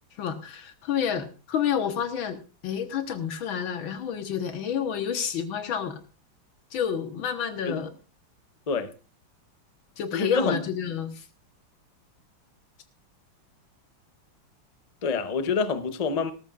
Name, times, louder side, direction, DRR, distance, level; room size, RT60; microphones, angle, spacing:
voice 1, 0.2-6.0 6.7-7.9 10.0-11.2, left 8 dB, 80° left, 2.1 m, -29 dB
voice 2, 10.1-10.6 15.0-16.3, left 5 dB, 40° left, 0.5 m, -26 dB
18.5 x 13.5 x 2.5 m
omnidirectional pair, 2.2 m